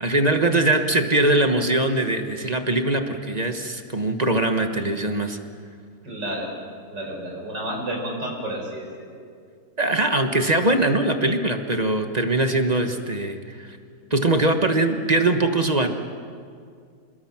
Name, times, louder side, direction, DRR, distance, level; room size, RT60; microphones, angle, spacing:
voice 1, 0.0-5.4 9.8-13.8 14.1-15.9, right 2 dB, 25° right, 6 dB, 1.2 m, -22 dB
voice 2, 6.0-6.5 6.9-9.1, right 1 dB, 65° right, -1 dB, 5.3 m, -31 dB
28.0 x 21.5 x 6.0 m, 2.2 s
omnidirectional pair, 2.0 m